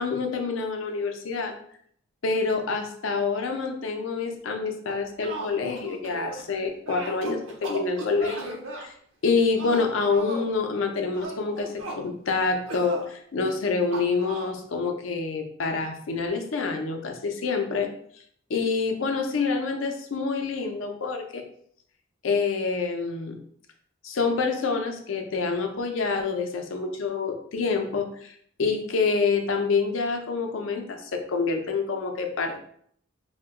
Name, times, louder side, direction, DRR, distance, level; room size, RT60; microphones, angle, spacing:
voice 1, 0.0-1.6 2.2-8.9 9.2-17.9 18.5-21.4 22.2-23.4 24.0-28.3 28.6-32.6, left 4 dB, 80° left, 4 dB, 0.5 m, -27 dB
sound 1, 4.9-6.5 6.9-8.8 9.6-10.5 11.1-12.0 12.7-13.1 13.9-14.5, right 2 dB, 75° right, 0.6 m, -36 dB
2.8 x 2.1 x 3.5 m, 0.64 s
head